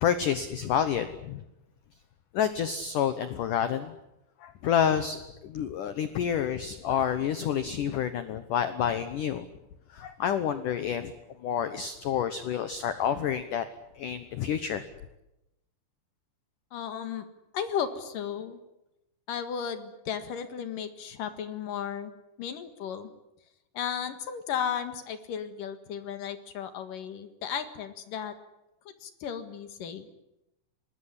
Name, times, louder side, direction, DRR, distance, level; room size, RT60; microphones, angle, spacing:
voice 1, 0.0-1.4 2.3-3.9 4.4-9.5 9.9-11.1 11.4-13.7 14.0-14.8, left 8 dB, 85° left, 11 dB, 1.8 m, -29 dB
voice 2, 16.7-17.3 17.5-18.6 19.3-22.1 22.4-23.1 23.7-28.3 29.0-30.1, left 8 dB, 60° left, 10 dB, 2.7 m, -34 dB
25.0 x 20.0 x 9.9 m, 0.90 s
omnidirectional pair, 5.5 m